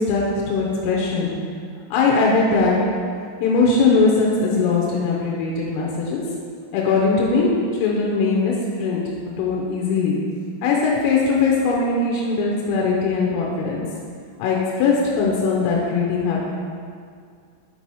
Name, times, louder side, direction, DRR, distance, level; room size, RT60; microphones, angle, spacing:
voice 1, 0.0-1.3 1.9-2.8 3.4-6.2 6.7-8.5 8.8-9.0 9.4-10.2 10.6-13.8 14.4-16.4, left 4 dB, 85° left, -3 dB, 3.2 m, -20 dB
6.1 x 6.1 x 2.8 m, 2.2 s
omnidirectional pair, 5.9 m